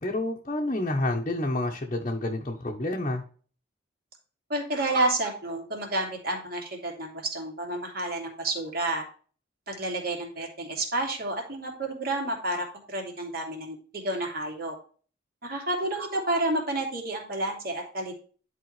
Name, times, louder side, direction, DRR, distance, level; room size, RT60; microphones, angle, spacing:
voice 1, 0.0-3.2, left 1 dB, 35° left, -1 dB, 1.0 m, -29 dB
voice 2, 4.5-9.0 9.7-14.7 15.4-18.1, right 2 dB, 50° right, 1 dB, 2.5 m, -30 dB
10.5 x 4.8 x 3.2 m, 0.41 s
head